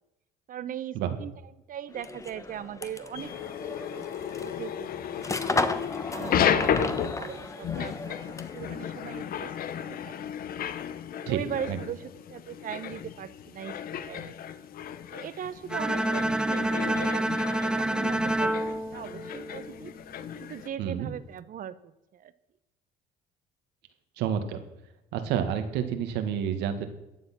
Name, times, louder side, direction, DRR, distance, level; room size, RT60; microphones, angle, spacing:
voice 1, 0.5-3.3 3.7-4.1 4.4-5.7 6.1-10.1 11.3-14.4 15.1-19.9 20.3-22.3, right 9 dB, 55° right, 15 dB, 0.9 m, -40 dB
sound 1, 1.9-8.7, left 3 dB, 20° left, 1.2 m, -34 dB
sound 2, 3.2-20.7, left 9 dB, 60° left, 1.0 m, -33 dB
Bowed string instrument, 15.7-19.9, right 1 dB, 5° right, 0.5 m, -28 dB
voice 2, 20.8-21.1 24.2-24.6 25.1-26.9, right 9 dB, 90° right, 7 dB, 2.0 m, -29 dB
14.5 x 9.8 x 6.1 m, 0.92 s
cardioid pair, 110°, 17 cm